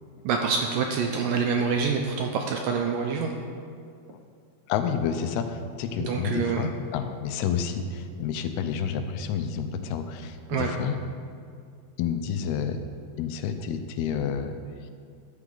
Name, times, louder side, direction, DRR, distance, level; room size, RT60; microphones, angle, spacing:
voice 1, 0.2-3.3 6.0-6.7 10.5-10.7, right 5 dB, 80° right, 3 dB, 2.0 m, -26 dB
voice 2, 4.7-11.0 12.0-12.8 13.2-14.6, left 7 dB, 85° left, 8 dB, 2.6 m, -29 dB
13.5 x 10.0 x 3.9 m, 2.3 s
omnidirectional pair, 4.5 m